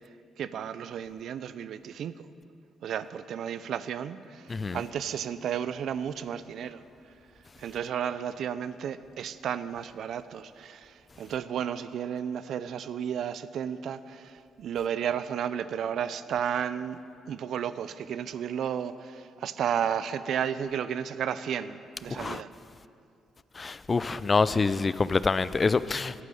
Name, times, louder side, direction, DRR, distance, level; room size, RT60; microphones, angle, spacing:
voice 1, 0.4-2.3 2.8-6.8 7.6-22.5, right 8 dB, 70° right, 0.5 m, -33 dB
voice 2, 4.5-4.8 22.1-22.4 23.6-26.1, left 4 dB, 30° left, 0.4 m, -26 dB
11.5 x 9.2 x 7.6 m
cardioid pair, 90°, 0 cm